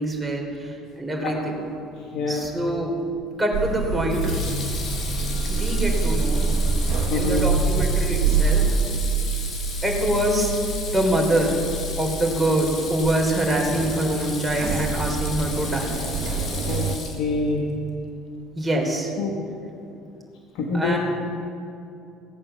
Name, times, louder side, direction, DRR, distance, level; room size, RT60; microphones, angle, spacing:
voice 1, 0.0-1.6 2.3-3.0 3.4-4.4 5.4-6.4 7.1-8.8 9.8-10.6 10.9-11.6 12.0-16.0 18.5-19.1 20.7-21.0, right 1 dB, 10° right, -1 dB, 3.6 m, -24 dB
voice 2, 2.1-2.5 7.1-7.4 16.7-16.8 17.1-17.6 19.2-19.4 20.5-21.0, left 3 dB, 70° left, 0 dB, 1.6 m, -25 dB
Water tap faucet / Sink (filling or washing), 2.4-2.8 4.1-17.5, left 4 dB, 50° left, 2.7 m, -35 dB
sound 1, 3.5-17.0, right 4 dB, 55° right, 1.3 m, -26 dB
16.0 x 8.7 x 6.9 m, 2.7 s
supercardioid pair, 80°, 0 cm